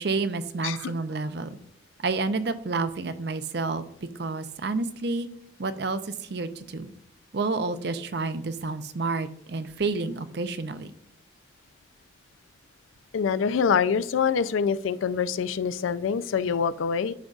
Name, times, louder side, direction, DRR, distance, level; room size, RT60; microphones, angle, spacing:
voice 1, 0.0-1.6 2.0-3.8 4.2-5.3 5.6-6.9 7.3-10.9, right 3 dB, 55° right, 12 dB, 0.5 m, -29 dB
voice 2, 13.1-17.1, left 6 dB, 85° left, 15 dB, 0.4 m, -25 dB
11.5 x 3.8 x 2.4 m, 0.75 s
head